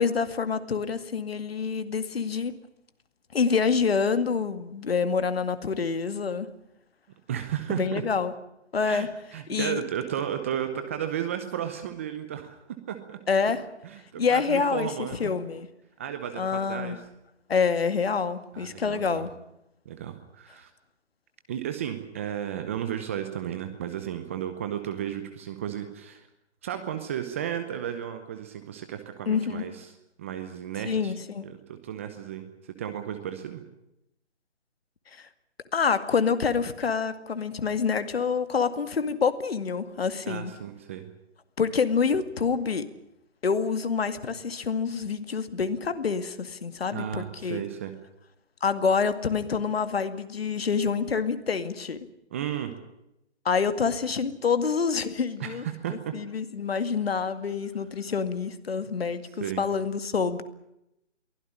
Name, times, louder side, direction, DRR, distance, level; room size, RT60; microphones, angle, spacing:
voice 1, 0.0-2.5 3.3-6.5 7.7-8.3 8.7-9.1 9.5-9.8 13.3-13.6 14.2-14.9 15.2-15.7 16.4-17.0 17.5-19.3 29.3-29.6 30.8-31.5 35.1-35.3 35.7-40.5 41.6-42.9 43.4-47.6 48.6-52.0 53.4-55.6 55.9-60.4, left 5 dB, 60° left, 11 dB, 2.2 m, -27 dB
voice 2, 7.3-8.0 8.9-13.2 13.8-15.3 16.0-17.0 18.5-19.3 19.8-20.7 21.5-26.3 26.6-29.9 30.2-31.1 31.4-33.6 40.3-41.1 46.9-47.9 52.3-52.8 55.4-56.1 59.4-59.6, right 10 dB, 10° right, 8 dB, 0.8 m, -34 dB
23.0 x 16.0 x 9.8 m, 0.84 s
figure-of-eight pair, 155°, 35 cm